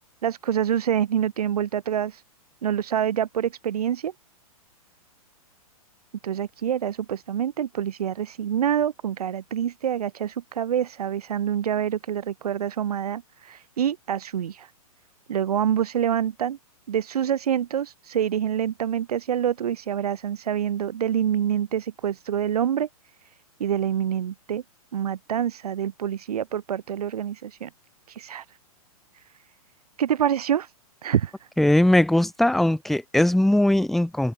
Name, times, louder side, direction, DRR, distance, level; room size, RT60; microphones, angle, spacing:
voice 1, 0.2-2.2 2.6-4.1 6.2-14.7 15.3-16.6 16.9-22.9 23.6-24.6 24.9-27.7 28.1-28.5 30.0-30.7 31.0-31.5, right 9 dB, 85° right, 0.8 m, -26 dB
voice 2, 31.6-34.3, left 1 dB, ahead, 0.4 m, -20 dB
hypercardioid pair, 135°, 19 cm